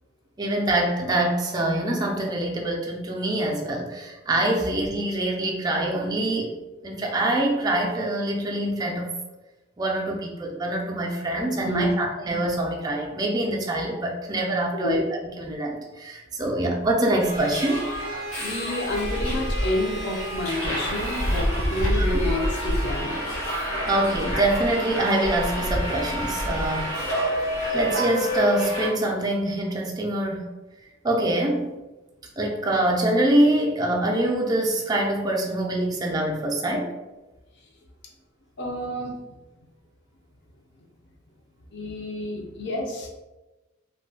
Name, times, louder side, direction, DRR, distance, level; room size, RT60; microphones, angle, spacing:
voice 1, 0.4-6.5 6.8-9.1 9.8-17.8 23.9-27.0 27.7-30.5 31.0-31.7 32.4-36.9 39.1-39.2, right 1 dB, 20° right, 0 dB, 0.3 m, -25 dB
voice 2, 11.6-11.9 14.7-15.0 18.4-23.2 38.6-39.1 41.7-43.1, left 1 dB, 50° left, 0 dB, 0.5 m, -29 dB
Subway metro underground, 17.2-28.9, equal, 80° left, 0.9 m, -27 dB
2.2 x 2.1 x 3.8 m, 1.1 s
head